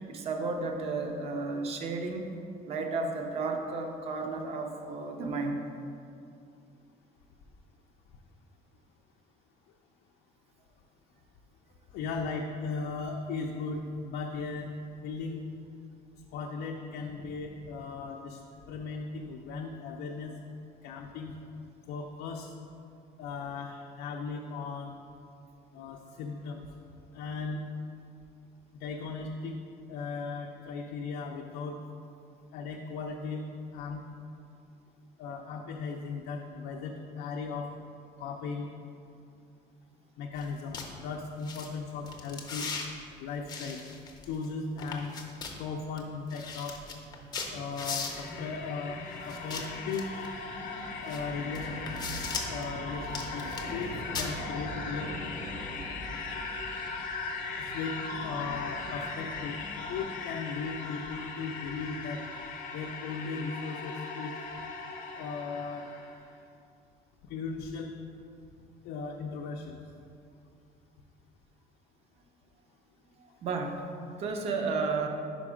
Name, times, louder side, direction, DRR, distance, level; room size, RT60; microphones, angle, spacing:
voice 1, 0.1-2.3 2.7-5.6 73.4-73.8 74.2-75.1, right 3 dB, 40° right, 4 dB, 0.5 m, -32 dB
voice 2, 11.9-14.7 15.0-15.4 16.3-20.3 20.8-21.3 21.9-22.5 23.2-24.9 25.7-26.7 27.1-27.6 28.7-29.6 29.9-31.8 32.5-33.4 33.7-34.0 35.2-37.7 38.2-38.7 40.2-42.7 43.2-43.8 44.2-45.1 45.6-46.8 47.5-50.1 51.0-51.7 52.5-55.1 57.5-58.0 58.2-59.6 59.9-62.3 62.7-64.3 65.2-65.9 67.2-67.9 68.8-69.8, left 4 dB, 85° left, 1 dB, 0.4 m, -37 dB
sound 1, 40.4-40.5 40.7-40.9 41.4-41.7 42.1-42.9 43.5-44.5 44.8-45.6 46.0-46.1 46.3-48.3 49.3-50.3 51.1-51.2 51.5-52.6 53.0-53.8 54.1-54.3, left 5 dB, 25° left, 0.5 m, -38 dB
sound 2, 46.7-60.0, right 1 dB, 70° right, 1.4 m, -44 dB
sound 3, 47.6-66.2, left 4 dB, 55° left, 0.7 m, -39 dB
5.1 x 4.9 x 4.8 m, 2.5 s
cardioid pair, 175°, 16 cm